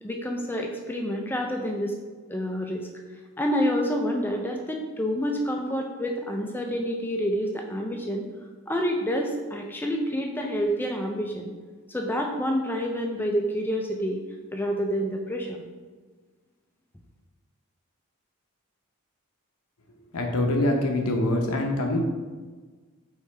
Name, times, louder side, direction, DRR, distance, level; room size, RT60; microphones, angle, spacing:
voice 1, 0.0-1.9 2.3-2.9 3.4-8.2 8.7-11.5 11.9-14.2 14.5-15.6, equal, 10° left, 2 dB, 0.4 m, -28 dB
voice 2, 20.1-22.0, left 1 dB, 85° left, 2 dB, 0.7 m, -24 dB
5.0 x 3.2 x 3.2 m, 1.4 s
head